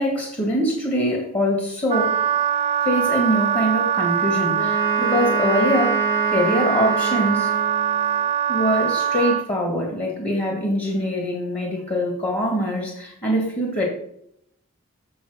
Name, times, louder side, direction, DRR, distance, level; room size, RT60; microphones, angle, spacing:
voice 1, 0.0-2.2 2.8-6.0 6.3-7.5 8.5-13.8, equal, 30° left, 0 dB, 2.0 m, -23 dB
Wind instrument woodwind instrument, 1.9-9.5, right 9 dB, 30° right, 0.3 m, -22 dB
Wind instrument woodwind instrument 2, 4.5-8.2, right 1 dB, 60° left, 4.0 m, -29 dB
7.2 x 7.0 x 6.5 m, 0.70 s
head